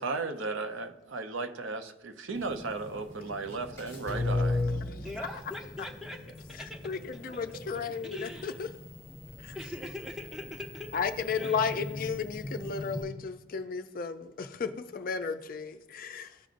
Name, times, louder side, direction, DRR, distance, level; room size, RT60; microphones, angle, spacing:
voice 1, 0.0-4.6, right 3 dB, 65° right, 8 dB, 0.6 m, -35 dB
sound 1, 2.3-13.0, left 2 dB, 15° left, 1.9 m, -37 dB
voice 2, 5.0-7.6 8.0-8.6 9.5-11.0 11.3-12.0, left 1 dB, ahead, 2 dB, 0.8 m, -42 dB
voice 3, 6.8-8.7 9.4-9.6 10.9-16.3, left 5 dB, 45° left, 8 dB, 0.4 m, -34 dB
14.0 x 5.1 x 2.5 m, 0.97 s
head